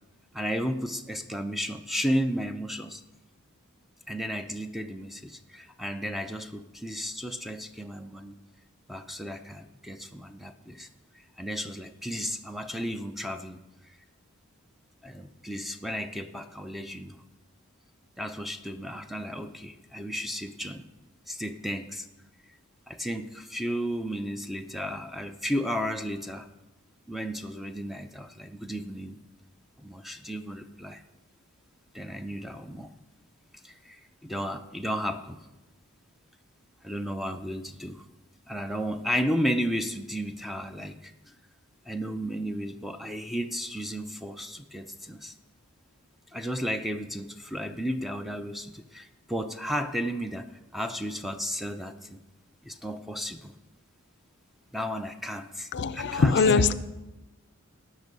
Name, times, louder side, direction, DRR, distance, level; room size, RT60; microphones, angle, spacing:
voice 1, 0.3-3.0 4.1-8.4 8.9-10.9 11.1-13.6 15.0-17.2 18.2-20.9 21.3-22.1 22.9-26.5 27.1-29.2 29.8-31.0 31.9-32.9 33.6-35.4 36.8-38.1 38.5-41.1 41.9-45.3 46.3-52.2 52.6-53.5 54.7-56.6, equal, ahead, 0.5 m, -33 dB
voice 2, 55.7-56.7, left 4 dB, 55° left, 0.5 m, -22 dB
17.0 x 6.1 x 5.3 m
head